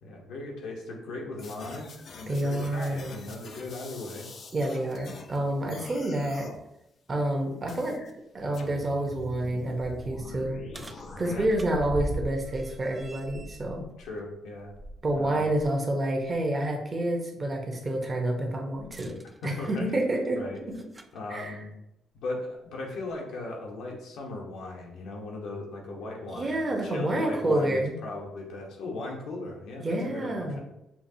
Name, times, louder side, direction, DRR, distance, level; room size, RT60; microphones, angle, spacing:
voice 1, 0.0-4.3 11.2-11.4 14.0-14.7 15.1-15.5 19.4-20.0 20.4-20.6 21.1-21.7 22.1-30.6, left 2 dB, 80° left, 0 dB, 1.0 m, -38 dB
sound 1, 1.4-5.4 5.7-6.6 7.7-8.1 8.5-11.5, left 3 dB, 60° left, 0.6 m, -45 dB
voice 2, 2.3-3.2 4.5-6.5 7.1-8.0 8.3-10.6 11.2-13.8 15.0-19.1 19.4-20.4 21.3-21.6 26.4-27.9 29.8-30.6, right 1 dB, 35° right, 1 dB, 0.9 m, -28 dB
sound 2, 10.2-15.8 16.2-16.3 18.8-21.2 22.2-22.3 23.1-23.2, right 2 dB, 20° right, 0.3 m, -41 dB
5.7 x 2.3 x 2.8 m, 0.86 s
cardioid pair, 90°, 0 cm